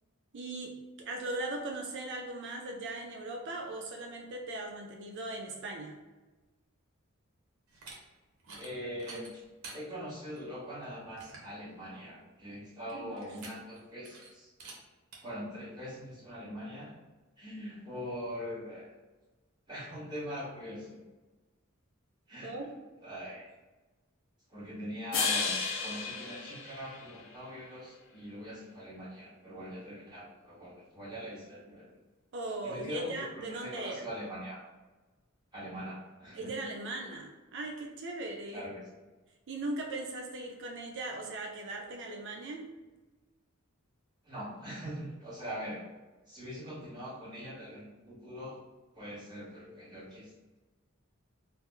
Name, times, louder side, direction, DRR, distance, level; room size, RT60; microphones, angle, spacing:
voice 1, 0.3-6.0 12.9-13.3 22.4-22.7 32.3-34.0 36.3-38.6 39.5-42.7, right 2 dB, 55° right, 1 dB, 0.4 m, -39 dB
sound 1, 7.7-8.0 8.4-8.7 9.0-9.8 10.3-10.4 10.8-10.9 11.2-11.5 13.2-13.8 14.0-14.3 14.6-14.8 15.1-15.2, right 3 dB, 85° right, 0.7 m, -48 dB
voice 2, 8.6-9.4 9.7-14.5 15.2-17.0 17.4-18.9 19.7-21.0 22.3-22.7 23.0-23.5 24.5-25.5 25.8-31.9 32.6-34.6 35.5-36.7 38.5-38.8 44.2-45.8 46.3-48.6 48.9-50.6, equal, 20° right, -8 dB, 1.1 m, -42 dB
sound 2, 25.1-27.5, left 5 dB, 65° left, 0.5 m, -33 dB
2.8 x 2.1 x 3.6 m, 1.2 s
head